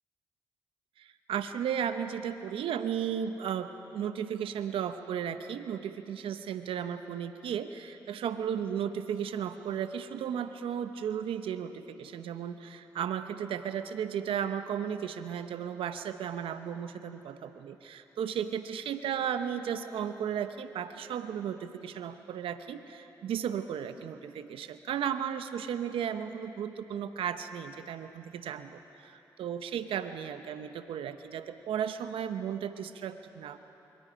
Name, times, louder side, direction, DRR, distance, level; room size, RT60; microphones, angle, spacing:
voice 1, 1.0-33.6, right 8 dB, 80° right, 10 dB, 0.8 m, -35 dB
28.0 x 22.5 x 5.1 m, 3.0 s
supercardioid pair, 40°, 9 cm